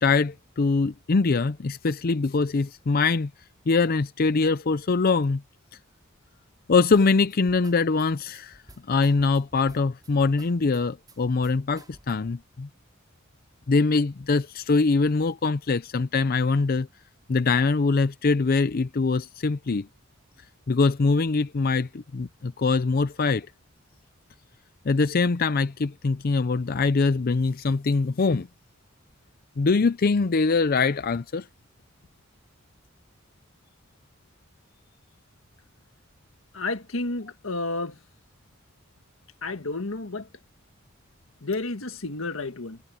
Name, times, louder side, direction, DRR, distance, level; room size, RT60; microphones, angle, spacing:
voice 1, 0.0-3.3 3.7-5.4 6.7-8.6 8.9-12.7 13.7-16.9 17.3-19.9 20.7-23.5 24.9-28.5 29.6-31.5, left 4 dB, 45° left, 0.5 m, -23 dB
sound 1, 6.9-12.4, right 1 dB, 20° right, 5.0 m, -52 dB
voice 2, 36.5-38.0 39.4-40.3 41.4-42.8, left 2 dB, 85° left, 1.7 m, -31 dB
head